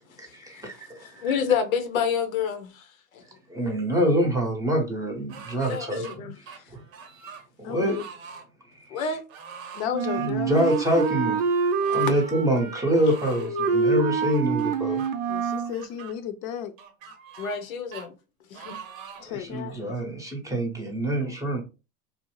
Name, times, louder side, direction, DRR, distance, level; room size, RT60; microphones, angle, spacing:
voice 1, 0.2-1.3 3.5-6.4 6.7-6.8 7.6-8.1 8.7-9.0 10.1-15.0 19.2-21.6, equal, 10° right, 0.7 m, -26 dB
voice 2, 1.2-2.8 3.1-3.2 5.7-6.3 8.9-9.2 17.4-18.1 18.5-18.8 19.5-19.9, left 6 dB, 90° left, 0.7 m, -28 dB
sound 1, 5.3-6.2 6.5-7.5 7.8-8.5 9.3-9.9 10.5-11.2 11.8-12.3 12.9-13.5 14.2-15.1 15.7-16.1 16.8-17.6 17.9-18.1 18.5-19.3 19.9-20.0, right 6 dB, 75° right, 0.8 m, -43 dB
voice 3, 7.6-8.0 9.7-10.5 15.3-16.7 19.2-19.5, left 9 dB, 45° left, 0.5 m, -33 dB
Wind instrument woodwind instrument, 9.9-15.8, right 5 dB, 60° right, 0.5 m, -26 dB
2.6 x 2.0 x 3.0 m
hypercardioid pair, 105°, 40 cm